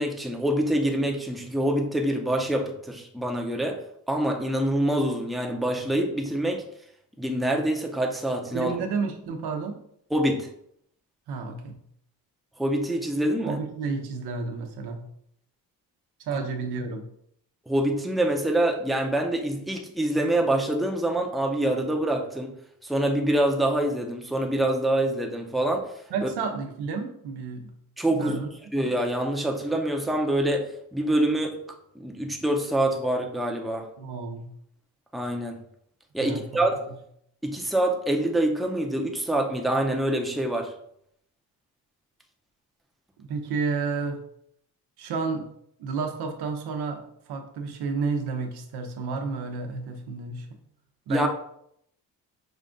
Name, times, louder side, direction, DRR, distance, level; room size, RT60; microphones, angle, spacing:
voice 1, 0.0-6.6 7.2-8.8 10.1-10.5 12.6-13.6 16.3-16.4 17.7-22.5 22.8-25.9 26.2-26.3 28.0-28.4 28.7-31.6 31.9-33.9 35.1-35.6 36.1-36.8 37.4-40.7 51.1-51.3, right 1 dB, ahead, 1 dB, 0.7 m, -25 dB
voice 2, 8.5-9.8 11.3-11.8 13.4-15.1 16.2-17.0 26.1-27.7 28.1-28.5 34.0-34.5 36.2-36.6 43.2-44.2 45.0-45.5 45.8-47.0 47.3-50.5 51.1-51.3, right 4 dB, 80° right, 4 dB, 0.9 m, -31 dB
5.4 x 2.4 x 3.8 m, 0.70 s
cardioid pair, 85°, 38 cm